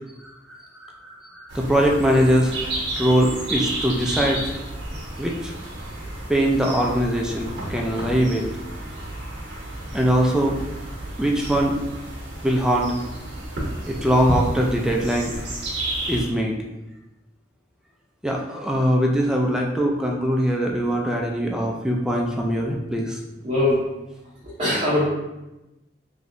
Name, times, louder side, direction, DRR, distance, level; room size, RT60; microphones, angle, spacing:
voice 1, 0.2-2.6 3.0-4.4 5.2-5.5 6.3-8.5 9.9-10.6 11.2-11.8 12.4-12.9 13.9-15.3 16.1-16.6 18.2-23.2, equal, 5° right, -1 dB, 0.3 m, -22 dB
sound 1, 1.5-16.3, right 1 dB, 75° right, 0.8 m, -31 dB
voice 2, 23.4-23.8 24.6-25.1, left 1 dB, 30° right, -10 dB, 0.7 m, -20 dB
3.1 x 2.7 x 2.5 m, 0.99 s
head